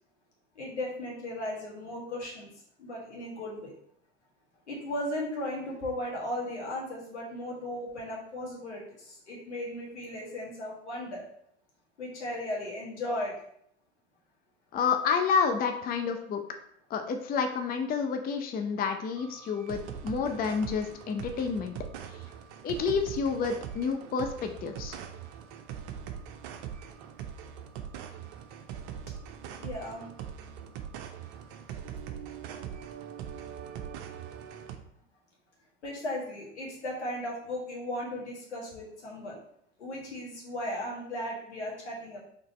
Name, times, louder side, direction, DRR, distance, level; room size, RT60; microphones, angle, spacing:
voice 1, 0.5-2.5 2.8-3.7 4.7-11.2 12.0-13.3 29.6-30.1 35.8-39.4 39.8-42.2, left 1 dB, 85° left, -3 dB, 1.6 m, -36 dB
voice 2, 14.7-16.4 16.9-21.7 22.1-22.2 22.6-25.0, left 5 dB, 25° left, 6 dB, 0.5 m, -29 dB
sound 1, 19.2-34.8, right 8 dB, 55° right, 0.7 m, -42 dB
4.0 x 3.3 x 4.1 m, 0.69 s
hypercardioid pair, 80°, 33 cm